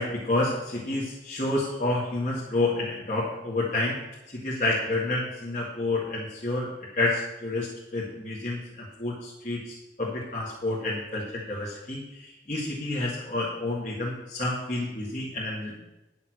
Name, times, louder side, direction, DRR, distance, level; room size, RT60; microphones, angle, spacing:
voice 1, 0.0-4.0 4.3-6.7 7.0-15.9, left 2 dB, 45° left, -6 dB, 1.9 m, -29 dB
10.0 x 7.1 x 6.4 m, 0.97 s
head